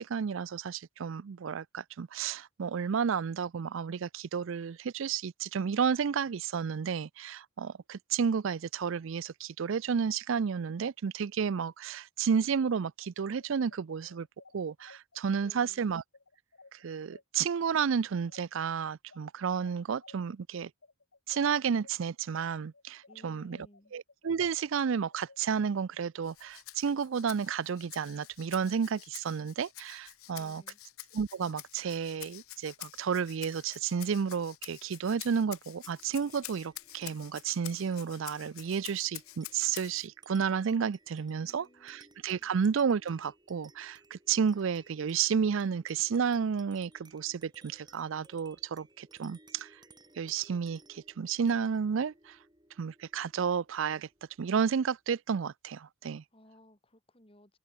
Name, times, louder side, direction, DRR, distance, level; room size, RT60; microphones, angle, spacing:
voice 1, 0.0-14.3 14.5-16.0 16.7-20.7 21.3-23.7 23.9-30.6 31.1-49.8 50.2-52.4 52.8-54.1 54.4-56.2, right 6 dB, 70° right, 0.4 m, -31 dB
sound 1, 12.6-21.9 22.3-25.4, left 3 dB, 70° left, 2.1 m, -58 dB
voice 2, 15.4-15.8 23.1-23.9 30.3-30.8 41.3-42.5 56.3-57.6, left 1 dB, 25° left, 3.1 m, -60 dB
Rattle (instrument), 26.2-40.1, left 17 dB, 90° left, 0.8 m, -48 dB
sound 2, 35.8-54.7, right 3 dB, 20° right, 7.6 m, -61 dB
head